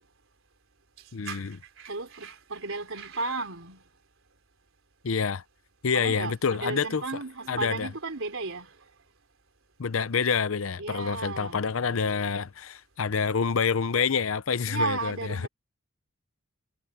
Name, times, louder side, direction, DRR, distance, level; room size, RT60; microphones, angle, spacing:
voice 1, 1.1-1.6 5.0-5.4 5.8-7.0 7.5-7.9 9.8-15.5, left 5 dB, 70° left, 0.7 m, -27 dB
voice 2, 1.8-3.8 5.9-8.8 10.8-12.2 14.7-15.5, right 3 dB, 70° right, 3.6 m, -34 dB
head